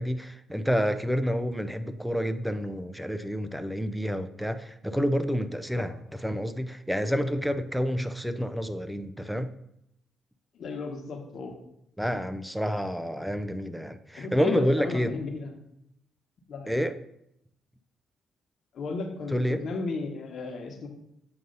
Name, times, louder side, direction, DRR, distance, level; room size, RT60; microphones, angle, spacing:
voice 1, 0.0-9.5 12.0-15.2 16.7-17.0 19.3-19.6, equal, ahead, 10 dB, 0.5 m, -29 dB
voice 2, 10.5-11.5 14.2-15.5 16.5-16.7 18.7-20.9, left 4 dB, 60° left, 3 dB, 1.2 m, -34 dB
7.7 x 2.7 x 5.4 m, 0.77 s
cardioid pair, 90°, 0 cm